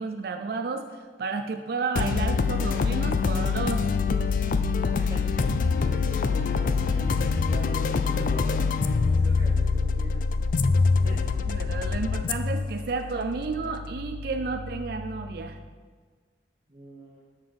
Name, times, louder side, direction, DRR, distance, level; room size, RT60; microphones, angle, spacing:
voice 1, 0.0-3.9 11.5-15.6, right 4 dB, 55° right, 6 dB, 0.4 m, -32 dB
sound 1, 2.0-15.3, left 4 dB, 50° left, 0.3 m, -25 dB
voice 2, 4.9-10.3 11.0-11.2 16.7-17.2, equal, 25° right, -5 dB, 1.0 m, -42 dB
6.8 x 5.7 x 5.3 m, 1.5 s
head